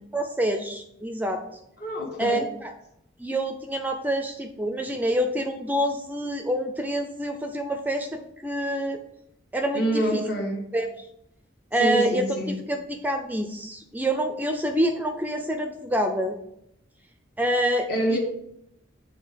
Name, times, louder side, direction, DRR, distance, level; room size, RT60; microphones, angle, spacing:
voice 1, 0.1-1.4 2.2-2.7 3.2-9.0 9.5-10.2 10.7-10.9 11.7-16.4 17.4-18.2, right 1 dB, 10° right, 6 dB, 0.4 m, -27 dB
voice 2, 1.8-2.4 9.7-10.6 11.8-12.5 17.9-18.2, right 1 dB, 55° left, 0 dB, 1.6 m, -26 dB
7.5 x 3.7 x 5.0 m, 0.77 s
head